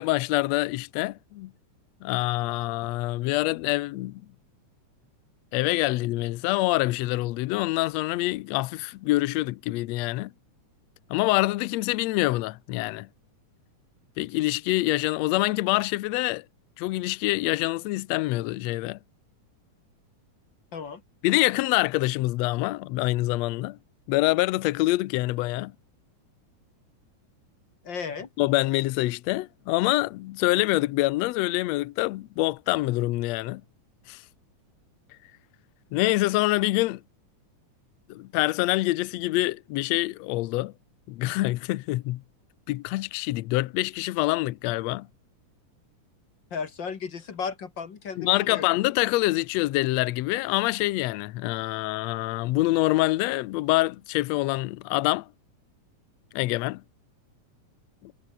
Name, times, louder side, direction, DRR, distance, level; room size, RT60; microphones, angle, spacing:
voice 1, 0.0-1.5 2.0-4.2 5.5-10.3 11.1-13.1 14.2-16.4 16.8-19.0 21.2-23.8 24.1-25.7 28.4-33.6 34.1-34.2 35.9-37.0 38.1-40.7 41.1-42.2 42.7-45.1 48.2-55.3 56.3-56.8 58.0-58.1, left 19 dB, 80° left, 1.6 m, -25 dB
voice 2, 27.8-28.3 46.5-48.7, left 6 dB, 45° left, 1.8 m, -34 dB
omnidirectional pair, 3.7 m